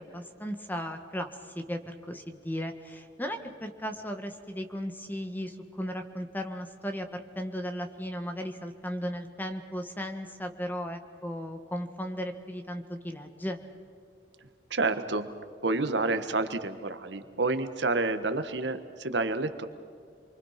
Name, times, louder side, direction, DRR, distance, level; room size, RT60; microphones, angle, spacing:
voice 1, 0.0-13.6, equal, 10° left, 6 dB, 1.7 m, -36 dB
voice 2, 14.7-15.3 15.6-19.7, right 3 dB, 75° right, 9 dB, 1.4 m, -29 dB
28.5 x 23.5 x 5.9 m, 2.3 s
head